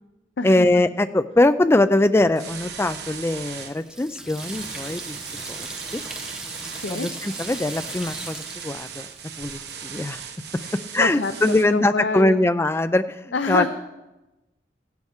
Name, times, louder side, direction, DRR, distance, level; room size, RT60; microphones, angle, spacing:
voice 1, 0.4-5.2 5.5-6.0 6.9-9.1 9.4-10.2 10.9-13.7, left 2 dB, 15° left, 12 dB, 0.3 m, -22 dB
sound 1, 2.4-3.7 4.3-11.6, right 7 dB, 60° right, 1.0 m, -37 dB
Water tap faucet / Sink (filling or washing), 2.9-9.6, right 1 dB, 5° right, 0.8 m, -39 dB
voice 2, 10.6-12.4 13.3-13.7, left 4 dB, 65° left, 8 dB, 0.6 m, -26 dB
15.5 x 10.5 x 3.6 m, 1.0 s
head